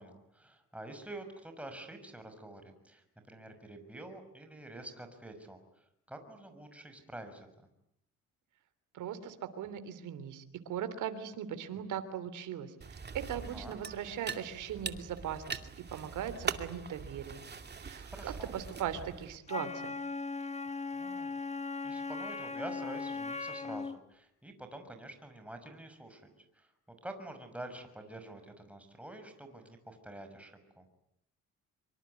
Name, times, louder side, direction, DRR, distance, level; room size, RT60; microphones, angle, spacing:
voice 1, 0.0-7.7 13.3-13.8 18.1-18.5 21.0-21.4 21.8-30.9, right 1 dB, 5° right, 6 dB, 6.1 m, -48 dB
voice 2, 8.9-15.6 15.9-17.4 17.8-19.9, right 9 dB, 80° right, 11 dB, 3.3 m, -39 dB
sound 1, 12.8-19.4, right 5 dB, 35° right, 2.4 m, -42 dB
Wind instrument woodwind instrument, 19.5-24.0, left 4 dB, 20° left, 1.5 m, -38 dB
25.0 x 25.0 x 9.5 m, 0.75 s
cardioid pair, 90°, 30 cm